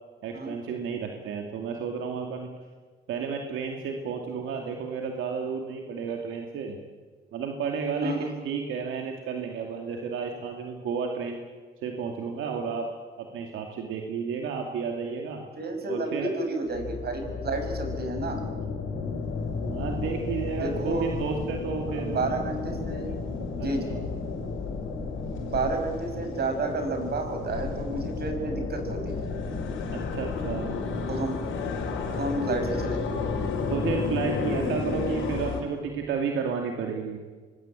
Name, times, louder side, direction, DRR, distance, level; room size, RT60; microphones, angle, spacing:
voice 1, 0.2-2.5 3.1-6.8 7.3-11.4 11.8-12.9 13.2-15.4 15.9-16.3 19.6-22.2 23.6-24.0 29.9-30.8 33.7-37.2, right 6 dB, 85° right, 2 dB, 2.4 m, -32 dB
voice 2, 15.6-18.5 20.4-21.1 22.0-23.1 23.5-24.0 25.3-29.3 31.1-31.5 32.1-33.2, right 2 dB, 55° right, 6 dB, 6.3 m, -31 dB
sound 1, 16.7-35.6, left 4 dB, 85° left, 5.2 m, -32 dB
25.0 x 20.5 x 9.0 m, 1.5 s
cardioid pair, 90°, 20 cm